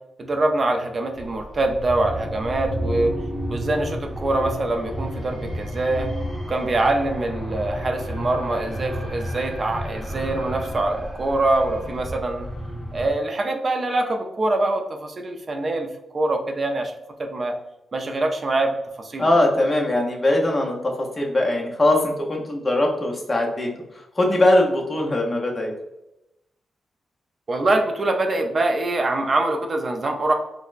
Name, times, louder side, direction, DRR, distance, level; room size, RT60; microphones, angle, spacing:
voice 1, 0.2-3.1 3.5-6.1 6.5-12.5 12.9-16.9 17.2-17.5 17.9-19.3 27.5-30.3, right 2 dB, 35° right, 3 dB, 0.4 m, -24 dB
sound 1, 1.1-13.1, equal, ahead, 1.3 m, -31 dB
voice 2, 19.2-23.7 24.2-25.7, left 1 dB, 20° left, 0 dB, 0.6 m, -21 dB
4.1 x 2.0 x 2.4 m, 0.90 s
wide cardioid pair, 150°, 0 cm